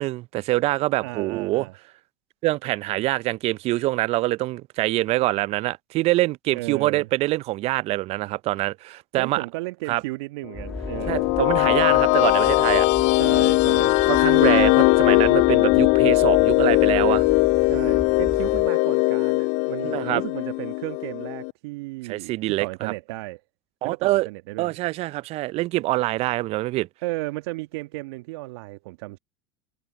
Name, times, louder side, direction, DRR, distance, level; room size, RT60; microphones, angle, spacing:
voice 1, 0.0-1.7 2.4-9.5 9.9-10.0 11.1-12.9 13.8-17.2 19.8-20.2 22.0-22.9 23.8-24.3 24.6-26.9, right 18 dB, 45° right, 0.6 m, -25 dB
voice 2, 1.0-1.7 6.5-7.1 9.2-11.3 13.2-14.0 17.7-23.4 23.8-24.8 27.0-29.2, right 22 dB, 65° right, 1.5 m, -34 dB
sound 1, 10.5-18.7, left 1 dB, 5° left, 1.3 m, -37 dB
sound 2, 10.7-21.5, left 30 dB, 55° left, 0.4 m, -20 dB
hypercardioid pair, 80°, 14 cm